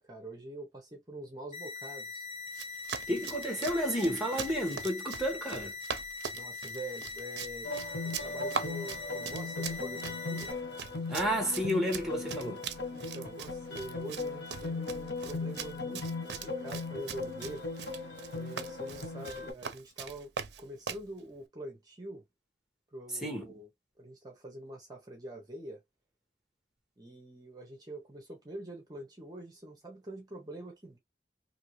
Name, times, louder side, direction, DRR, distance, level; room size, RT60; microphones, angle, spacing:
voice 1, 0.0-2.2 6.3-7.7 8.0-10.5 12.9-17.6 18.3-20.3 20.6-22.3 22.9-23.7 24.0-25.8 27.0-31.0, right 1 dB, 20° right, 0.8 m, -45 dB
sound 1, 1.5-10.5, left 4 dB, 45° left, 0.8 m, -42 dB
Run, 2.5-21.1, right 7 dB, 65° right, 0.5 m, -42 dB
voice 2, 3.1-5.7 11.1-12.6 23.2-23.6, equal, ahead, 1.1 m, -31 dB
sound 2, 7.6-19.5, left 3 dB, 90° left, 1.7 m, -38 dB
2.8 x 2.6 x 3.0 m
head